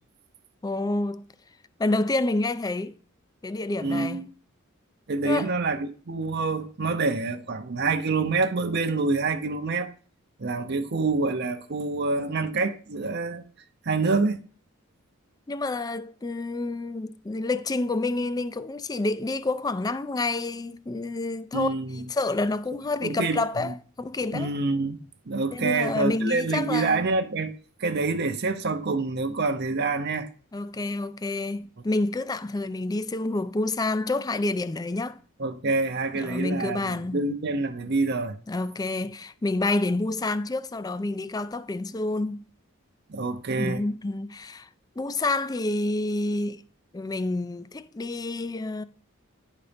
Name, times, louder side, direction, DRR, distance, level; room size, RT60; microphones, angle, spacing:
voice 1, 0.6-1.3 1.8-3.0 3.4-4.2 5.3-5.5 15.5-24.5 25.5-27.0 30.5-35.2 36.1-37.3 38.5-42.4 43.6-44.7 45.0-46.6 46.9-48.8, left 2 dB, 20° left, 0.4 m, -28 dB
voice 2, 3.8-4.3 5.1-9.9 10.4-13.4 13.9-14.4 21.5-22.0 23.0-23.7 24.3-27.5 27.8-30.3 35.4-38.4 43.1-43.8, right 3 dB, 50° right, 0.7 m, -27 dB
10.5 x 4.1 x 5.1 m
head